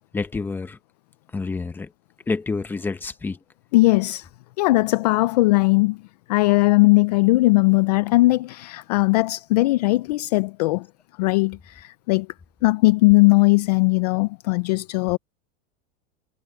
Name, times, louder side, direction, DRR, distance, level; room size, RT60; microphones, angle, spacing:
voice 1, 0.1-0.8 1.3-1.9 2.3-3.4, left 4 dB, 5° left, 0.9 m, -28 dB
voice 2, 3.7-4.3 4.6-6.0 6.3-10.9 11.2-12.3 12.6-15.2, left 21 dB, 40° left, 0.4 m, -19 dB
supercardioid pair, 170°, 34 cm